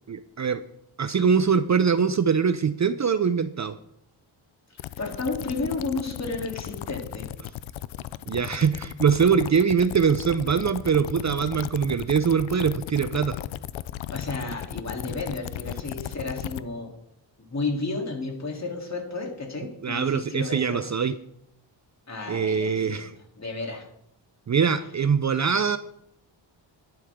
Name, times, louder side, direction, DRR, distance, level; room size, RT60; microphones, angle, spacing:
voice 1, 0.1-0.6 1.0-3.8 8.3-13.4 19.8-21.1 22.3-23.1 24.5-25.8, right 6 dB, 40° right, 12 dB, 0.6 m, -23 dB
sound 1, 4.8-16.6, left 13 dB, 80° left, 0.6 m, -36 dB
voice 2, 5.0-7.3 14.1-16.9 17.5-20.8 22.1-23.0 23.4-23.9, left 3 dB, 35° left, 1 dB, 3.3 m, -32 dB
11.0 x 10.0 x 3.7 m, 0.74 s
cardioid pair, 65°, 46 cm